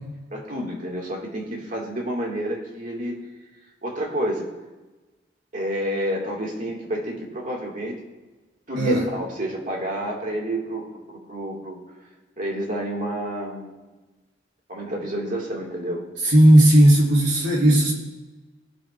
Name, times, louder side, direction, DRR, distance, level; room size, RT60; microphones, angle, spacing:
voice 1, 0.3-3.2 3.8-4.5 5.5-8.0 8.7-11.8 12.4-13.7 14.7-16.0, equal, 45° right, -1 dB, 2.1 m, -29 dB
voice 2, 16.2-17.9, right 1 dB, 90° right, -3 dB, 3.0 m, -15 dB
17.5 x 7.1 x 2.5 m, 1.2 s
head